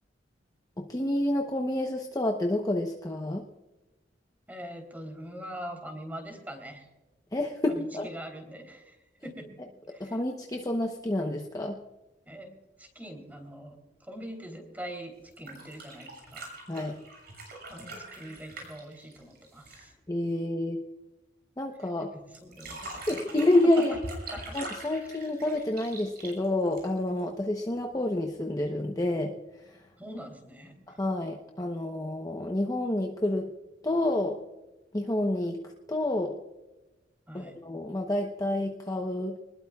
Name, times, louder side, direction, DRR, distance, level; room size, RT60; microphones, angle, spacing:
voice 1, 0.9-3.4 7.3-8.1 10.0-11.8 16.7-17.0 20.1-20.8 21.6-22.1 22.8-24.0 24.5-29.4 29.7-29.8 31.0-33.5 33.8-34.4 34.9-36.4 37.3-39.3, left 1 dB, 20° left, 2 dB, 0.9 m, -28 dB
voice 2, 4.5-6.9 7.7-9.6 9.9-10.2 12.2-16.5 17.7-19.9 21.8-23.2 24.3-24.6 30.0-31.0 37.3-37.5, equal, 10° right, 3 dB, 3.4 m, -43 dB
sound 1, 15.2-19.9 22.3-27.2 28.6-28.7, right 2 dB, 60° right, 6.8 m, -43 dB
24.5 x 20.5 x 2.4 m, 1.1 s
head